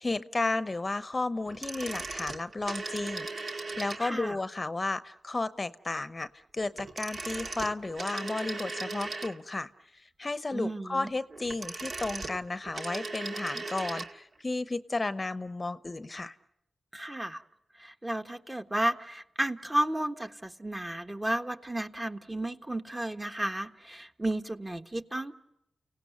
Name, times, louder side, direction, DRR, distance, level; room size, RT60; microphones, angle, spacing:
voice 1, 0.0-6.3 6.5-16.3, left 2 dB, 35° left, 13 dB, 0.9 m, -33 dB
sound 1, 1.5-4.3 6.7-9.6 11.3-14.2 14.4-14.5, right 3 dB, 60° right, 1.8 m, -38 dB
voice 2, 4.0-4.4 10.5-11.1 16.9-17.4 17.7-25.3, right 1 dB, 20° right, 6 dB, 1.4 m, -33 dB
30.0 x 17.5 x 9.4 m, 0.86 s
cardioid pair, 45°, 0 cm